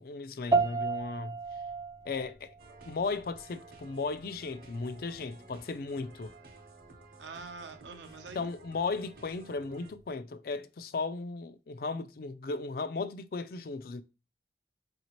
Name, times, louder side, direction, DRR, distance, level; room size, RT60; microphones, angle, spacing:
voice 1, 0.0-1.4 2.0-2.5 2.8-6.3 8.3-14.0, left 4 dB, 55° left, 0.4 m, -36 dB
sound 1, 0.5-10.1, right 4 dB, 20° right, 0.3 m, -36 dB
sound 2, 2.6-9.9, right 2 dB, 55° right, 0.9 m, -54 dB
voice 2, 7.2-8.5, right 4 dB, 80° right, 0.7 m, -45 dB
4.9 x 2.7 x 3.0 m
head